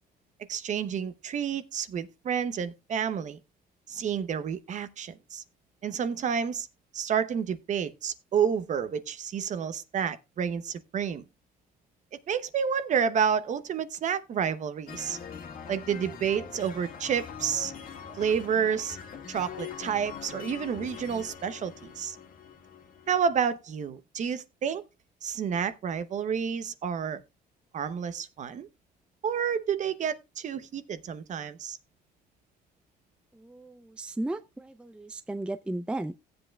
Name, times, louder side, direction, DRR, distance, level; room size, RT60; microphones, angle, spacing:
voice 1, 0.5-3.4 3.9-5.4 5.8-6.7 6.9-11.2 12.3-15.2 15.7-17.7 18.2-19.0 19.3-22.2 23.1-24.8 25.2-27.2 27.7-28.7 29.2-31.8, right 7 dB, 45° right, 0.8 m, -30 dB
sound 1, 14.9-23.4, left 7 dB, 55° left, 1.7 m, -43 dB
voice 2, 33.3-36.1, right 2 dB, 5° right, 0.4 m, -35 dB
16.5 x 7.8 x 2.3 m
cardioid pair, 110°, 17 cm